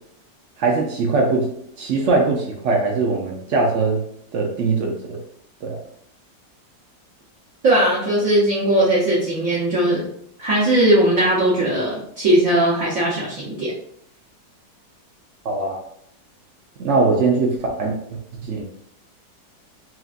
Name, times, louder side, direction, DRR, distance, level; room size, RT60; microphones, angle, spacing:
voice 1, 0.6-1.5 1.8-4.0 4.3-5.2 5.6-5.8 15.4-15.8 16.8-17.9 18.4-18.7, right 3 dB, 85° right, 0 dB, 0.6 m, -21 dB
voice 2, 7.6-10.0 10.4-13.7, right 1 dB, 55° right, -5 dB, 1.2 m, -18 dB
5.8 x 2.6 x 2.5 m, 0.71 s
omnidirectional pair, 2.0 m